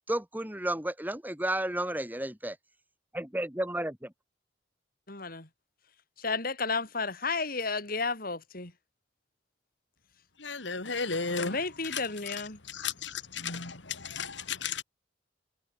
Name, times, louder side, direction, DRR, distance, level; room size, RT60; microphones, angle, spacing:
voice 1, 0.1-2.6 3.1-4.1, right 1 dB, 10° right, 3.1 m, -32 dB
voice 2, 5.1-5.5 6.2-8.7 11.4-12.6, left 4 dB, 50° left, 4.4 m, -32 dB
voice 3, 10.4-11.6 11.9-12.0 12.3-12.4 12.7-14.8, left 5 dB, 80° left, 2.9 m, -34 dB
head